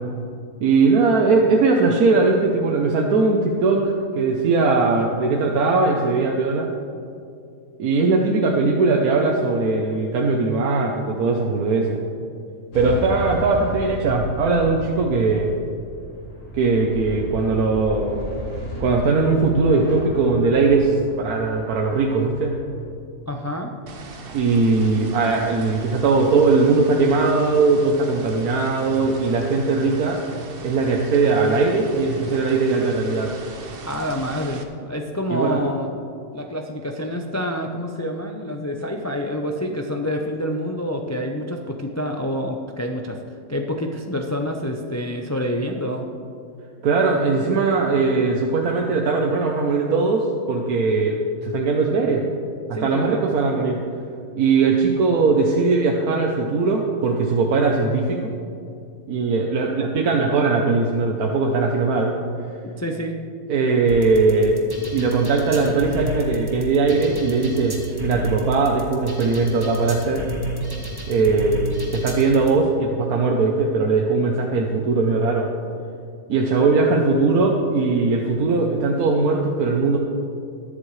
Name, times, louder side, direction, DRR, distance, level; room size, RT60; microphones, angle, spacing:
voice 1, 0.6-6.7 7.8-12.0 12.7-15.5 16.5-18.2 18.8-22.6 24.3-30.2 30.6-33.3 35.3-35.6 46.8-52.2 52.8-53.8 54.4-58.3 59.1-62.2 63.5-64.6 64.9-70.3 71.1-71.6 71.9-75.5 76.3-80.0, right 3 dB, 90° right, 0 dB, 1.4 m, -20 dB
sound 1, 12.7-22.8, equal, 60° left, 2.6 m, -34 dB
voice 2, 23.3-23.7 33.8-35.9 36.3-43.2 43.5-46.0 52.7-53.3 62.8-63.2, equal, 25° left, 2 dB, 0.3 m, -27 dB
sound 2, 23.9-34.6, right 3 dB, 45° right, 1.0 m, -39 dB
sound 3, 63.9-72.5, right 1 dB, 15° right, 1.2 m, -31 dB
21.0 x 7.7 x 3.2 m, 2.4 s
omnidirectional pair, 1.5 m